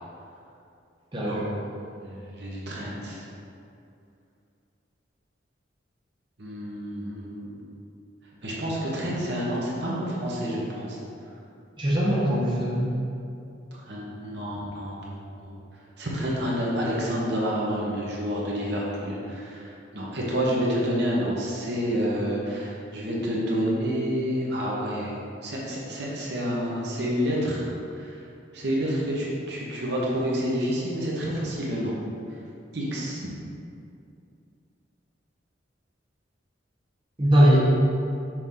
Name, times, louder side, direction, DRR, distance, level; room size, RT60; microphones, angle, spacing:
voice 1, 1.1-1.5 11.8-12.9 37.2-37.7, equal, 25° right, -7 dB, 1.0 m, -21 dB
voice 2, 2.0-3.3 6.4-7.5 8.4-11.0 13.7-15.6 16.0-25.2 25.4-28.2 28.5-31.9 32.7-33.3, equal, 60° right, -5 dB, 1.1 m, -29 dB
6.1 x 4.4 x 3.8 m, 2.5 s
head